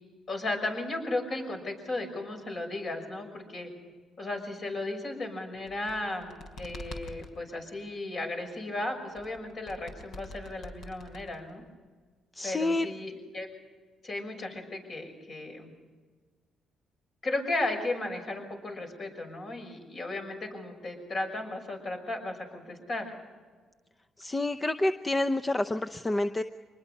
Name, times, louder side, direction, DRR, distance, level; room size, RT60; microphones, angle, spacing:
voice 1, 0.3-3.7 4.2-11.6 12.4-13.5 14.0-15.7 17.2-23.1, left 2 dB, 50° left, 3 dB, 6.1 m, -35 dB
sound 1, 5.5-7.3 9.1-11.7, left 2 dB, 65° left, 4.2 m, -45 dB
voice 2, 12.3-12.9 24.2-26.4, left 2 dB, 20° left, 8 dB, 0.7 m, -28 dB
24.5 x 20.5 x 5.5 m, 1.5 s
cardioid pair, 90°, 0 cm